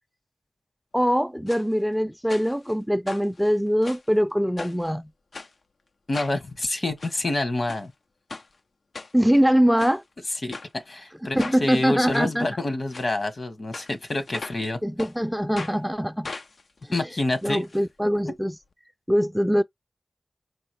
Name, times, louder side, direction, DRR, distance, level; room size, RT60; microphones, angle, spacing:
voice 1, 0.9-5.1 9.1-10.0 11.3-12.5 14.8-16.3 17.4-18.6 19.1-19.6, equal, ahead, 0.4 m, -22 dB
sound 1, 1.5-1.6 2.3-2.7 3.1-4.1 4.6-4.9 5.3-5.5 6.1-6.4 6.8-7.1 7.7-7.9 8.3-8.5 8.9-9.4 9.8-10.0 10.5-10.7 11.4-11.6 12.1-12.3 12.9-13.1 13.7-14.7 15.0-15.1 15.6-15.8 16.2-17.8 18.1-18.2 18.4-18.5, left 3 dB, 90° left, 0.4 m, -38 dB
voice 2, 6.1-7.9 10.4-14.8 16.9-17.7, left 2 dB, 70° left, 1.1 m, -28 dB
4.7 x 2.3 x 3.1 m
wide cardioid pair, 50°, 0 cm